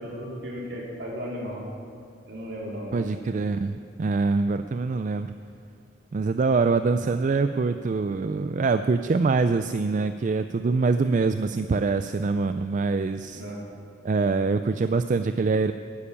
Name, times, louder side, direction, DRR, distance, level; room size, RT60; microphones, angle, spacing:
voice 1, 0.0-1.6 2.3-3.2 13.3-13.6, equal, 65° right, -4 dB, 3.8 m, -35 dB
voice 2, 2.9-5.3 6.1-13.4 14.0-15.7, right 4 dB, 40° right, 10 dB, 0.3 m, -24 dB
12.0 x 9.9 x 8.6 m, 2.4 s
head